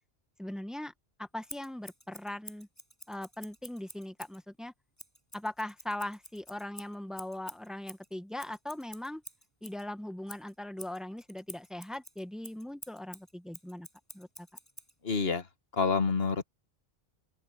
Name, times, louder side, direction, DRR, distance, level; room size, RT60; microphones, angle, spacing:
voice 1, 0.4-0.9 1.2-2.7 3.1-4.7 5.3-9.2 9.6-13.9 14.1-14.5, left 1 dB, ahead, 1.1 m, -40 dB
Scissors, 1.5-4.4 5.0-9.8 10.3-14.9, equal, 15° left, 7.4 m, -50 dB
voice 2, 15.0-15.4 15.8-16.4, left 5 dB, 75° left, 1.8 m, -27 dB
open air
omnidirectional pair, 1.0 m